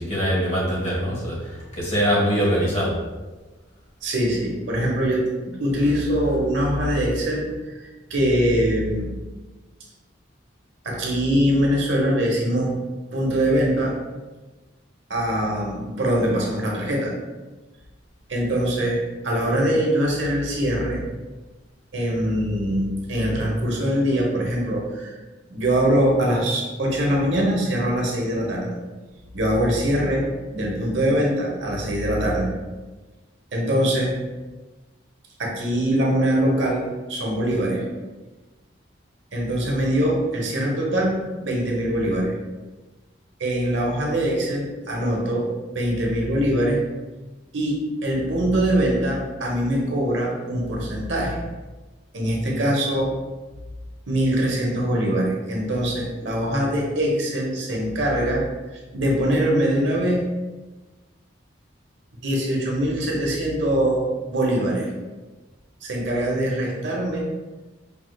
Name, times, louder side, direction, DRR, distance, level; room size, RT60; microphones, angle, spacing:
voice 1, 0.0-3.0, equal, 35° left, -6 dB, 1.5 m, -23 dB
voice 2, 4.0-9.1 10.8-12.7 13.1-14.0 15.1-17.1 18.3-21.0 21.9-25.1 25.5-28.7 29.3-32.5 33.5-34.1 35.4-37.9 39.3-42.3 43.4-45.5 45.7-46.8 47.5-51.4 52.1-53.1 54.1-58.4 58.7-60.3 62.2-64.0 64.3-64.9 65.8-67.3, right 1 dB, 70° right, -2 dB, 0.9 m, -23 dB
5.1 x 3.2 x 2.3 m, 1.2 s
head